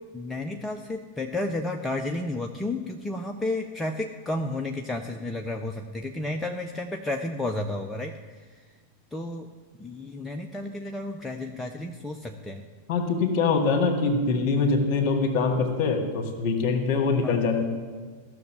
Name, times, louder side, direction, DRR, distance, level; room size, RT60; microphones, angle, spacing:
voice 1, 0.1-8.6 9.1-9.5 9.8-12.6 17.2-17.4, left 2 dB, 10° left, 3 dB, 0.6 m, -32 dB
voice 2, 12.9-17.6, left 4 dB, 40° left, 4 dB, 1.9 m, -24 dB
14.0 x 6.5 x 7.1 m, 1.5 s
figure-of-eight pair, 90°, 0 cm